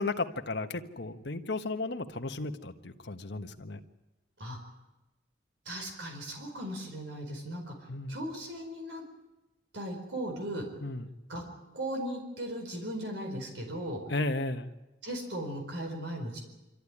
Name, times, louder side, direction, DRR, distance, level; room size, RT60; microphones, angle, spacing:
voice 1, 0.0-3.8 7.9-8.2 10.8-11.1 14.1-14.7, left 2 dB, 70° left, 6 dB, 1.4 m, -34 dB
voice 2, 5.7-7.7 8.1-9.0 9.7-10.6 11.3-11.4 11.7-14.0 15.0-16.4, right 1 dB, 75° right, 2 dB, 4.6 m, -37 dB
26.0 x 14.0 x 10.0 m, 1.0 s
head